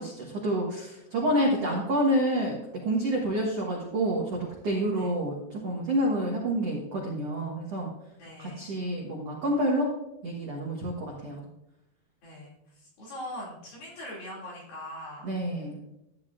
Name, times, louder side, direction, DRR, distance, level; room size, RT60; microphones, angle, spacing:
voice 1, 0.0-2.6 2.8-7.9 8.4-9.9 10.2-11.4 15.2-15.8, right 1 dB, 80° right, -2 dB, 1.4 m, -28 dB
voice 2, 8.2-8.7 11.1-11.4 12.2-15.3, left 1 dB, 55° left, -6 dB, 4.3 m, -42 dB
13.5 x 9.8 x 2.6 m, 0.86 s
omnidirectional pair, 5.1 m